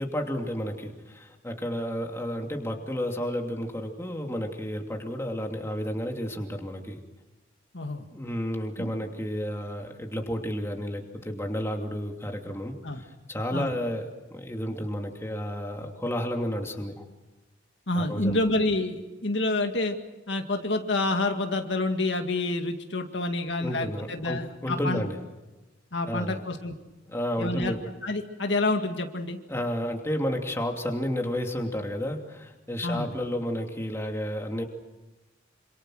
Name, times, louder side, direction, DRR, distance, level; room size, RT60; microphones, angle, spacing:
voice 1, 0.0-7.0 8.1-17.1 17.9-18.4 23.6-25.2 26.1-26.4 27.1-27.8 29.5-34.6, equal, 15° left, 2 dB, 2.7 m, -31 dB
voice 2, 7.7-8.0 8.8-8.9 12.8-13.0 13.5-13.7 17.9-20.0 20.3-25.1 25.9-26.8 27.4-27.8 28.0-29.4 32.8-33.1, left 2 dB, 65° left, 5 dB, 2.1 m, -28 dB
27.5 x 27.0 x 6.4 m, 1.1 s
head